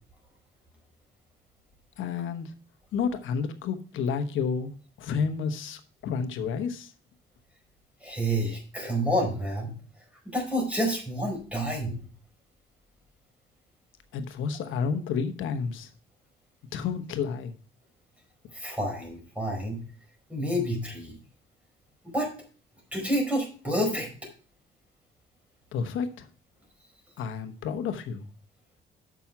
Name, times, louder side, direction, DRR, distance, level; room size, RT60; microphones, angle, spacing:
voice 1, 2.0-2.5 2.9-6.9 14.1-15.9 16.7-17.5 25.7-26.3 27.2-28.2, left 6 dB, 80° left, 9 dB, 1.1 m, -30 dB
voice 2, 8.0-9.7 10.2-12.0 18.5-19.8 20.3-21.2 22.1-22.3 22.9-24.1, equal, 5° right, 1 dB, 4.6 m, -29 dB
7.1 x 6.1 x 5.8 m, 0.40 s
cardioid pair, 90°, 20 cm